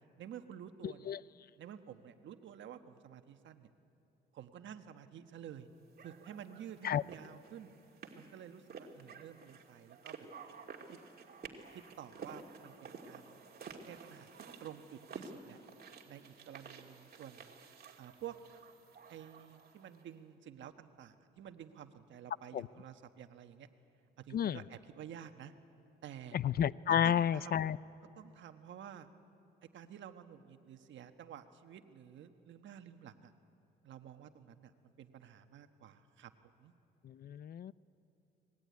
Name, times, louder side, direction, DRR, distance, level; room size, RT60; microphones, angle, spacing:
voice 1, 0.2-1.1 1.6-3.7 4.3-5.7 6.0-7.7 8.1-10.3 10.9-11.0 11.7-13.4 13.9-14.3 14.6-15.6 16.1-17.5 18.0-18.4 19.1-23.7 24.2-25.5 26.0-26.4 27.0-27.8 28.2-29.1 29.7-33.3 33.8-36.7, right 9 dB, 70° right, 8 dB, 1.3 m, -51 dB
voice 2, 0.8-1.2 6.8-7.0 22.5-22.7 24.3-24.6 26.3-27.8 37.0-37.7, left 9 dB, 50° left, 19 dB, 0.5 m, -31 dB
sound 1, 6.0-20.0, right 5 dB, 50° right, 2.5 m, -52 dB
24.0 x 20.0 x 9.4 m, 2.8 s
cardioid pair, 90°, 20 cm